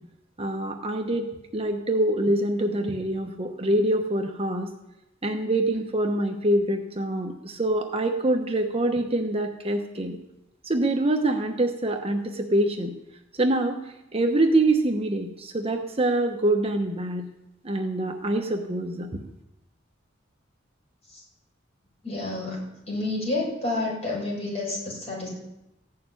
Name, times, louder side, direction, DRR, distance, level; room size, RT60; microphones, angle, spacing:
voice 1, 0.4-4.7 5.2-10.2 10.6-12.9 13.4-13.8 14.1-17.2 17.6-19.1, right 1 dB, 30° right, 4 dB, 1.1 m, -25 dB
voice 2, 22.0-25.3, left 2 dB, 35° left, -3 dB, 7.0 m, -30 dB
15.5 x 6.8 x 9.5 m, 0.90 s
head